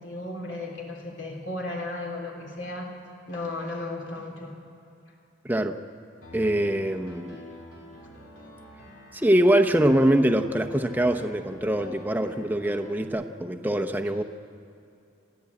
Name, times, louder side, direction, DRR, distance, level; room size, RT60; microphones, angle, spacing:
voice 1, 0.0-2.9 3.3-4.5, left 2 dB, 65° left, 0 dB, 3.3 m, -35 dB
voice 2, 5.4-5.8 6.3-7.4 9.1-14.2, right 1 dB, 10° right, 5 dB, 0.8 m, -23 dB
Piano, 6.2-13.1, left 1 dB, 90° left, 4.4 m, -45 dB
28.5 x 12.0 x 8.4 m, 2.7 s
head